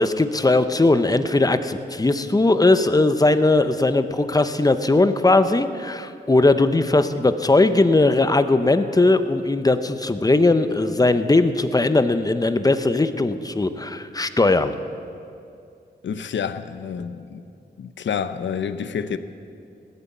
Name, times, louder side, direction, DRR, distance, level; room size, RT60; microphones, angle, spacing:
voice 1, 0.0-14.7, left 2 dB, 20° left, 0.7 m, -19 dB
voice 2, 16.0-17.4 17.8-19.2, left 7 dB, 80° left, 0.7 m, -28 dB
18.0 x 8.5 x 8.2 m
wide cardioid pair, 90°, 19 cm